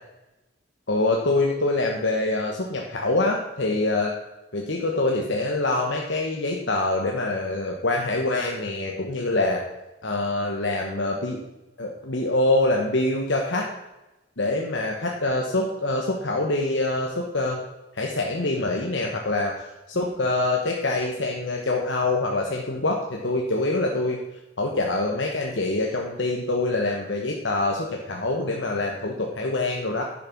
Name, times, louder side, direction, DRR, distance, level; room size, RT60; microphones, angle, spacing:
voice 1, 0.9-4.1 4.5-9.6 10.0-11.4 11.8-13.7 14.4-17.6 17.9-24.2 24.6-30.0, left 2 dB, 65° left, 0 dB, 1.2 m, -25 dB
10.5 x 6.7 x 5.9 m, 1.0 s
head